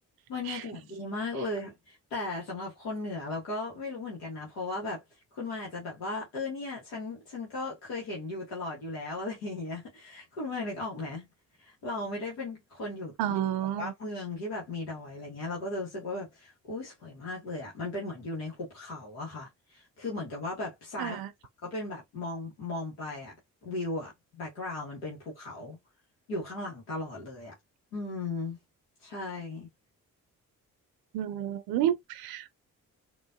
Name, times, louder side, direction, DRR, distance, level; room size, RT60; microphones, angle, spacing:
voice 1, 0.3-5.0 5.3-11.3 11.6-13.4 13.8-21.2 21.6-23.3 23.6-24.1 24.4-25.8 26.3-27.5 27.9-28.6 29.0-29.7, left 2 dB, 90° left, 1.2 m, -36 dB
voice 2, 13.2-13.9 21.0-21.3 31.1-32.5, right 11 dB, 80° right, 0.5 m, -30 dB
3.9 x 2.5 x 2.3 m
hypercardioid pair, 45°, 37 cm